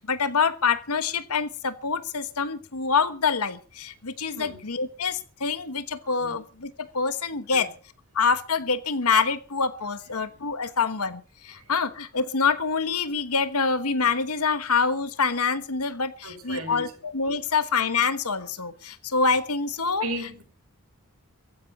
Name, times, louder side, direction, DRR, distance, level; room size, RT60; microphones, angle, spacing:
voice 1, 0.0-7.7 8.1-20.0, left 5 dB, 80° left, 12 dB, 1.3 m, -26 dB
voice 2, 6.0-6.4 7.5-7.7 16.2-16.8 20.0-20.4, right 1 dB, 75° right, 4 dB, 6.4 m, -35 dB
15.5 x 10.5 x 6.6 m, 0.39 s
head